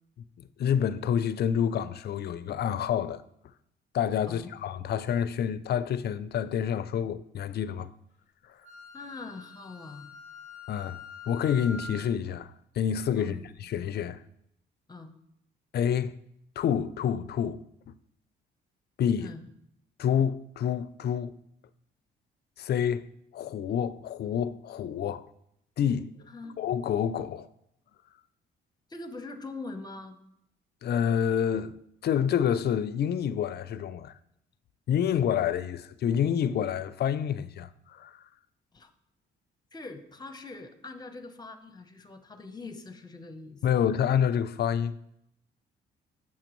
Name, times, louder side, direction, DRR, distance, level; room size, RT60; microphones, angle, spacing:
voice 1, 0.6-3.2 3.9-7.9 10.7-11.0 11.3-12.5 12.8-14.2 15.7-16.1 16.6-17.9 19.0-19.3 20.0-21.4 22.6-23.1 23.3-25.3 25.8-26.1 26.6-27.5 30.8-31.8 32.0-34.1 34.9-38.2 43.6-45.0, left 8 dB, 55° left, 0.4 m, -28 dB
Wind instrument woodwind instrument, 8.6-12.0, left 4 dB, 40° right, 1.6 m, -45 dB
voice 2, 8.9-10.1 13.2-13.4 14.9-15.1 19.2-19.4 26.3-26.6 28.9-30.2 38.7-38.9 39.7-43.8, left 3 dB, 20° left, 0.7 m, -43 dB
7.3 x 5.9 x 3.0 m
cardioid pair, 90°, 20 cm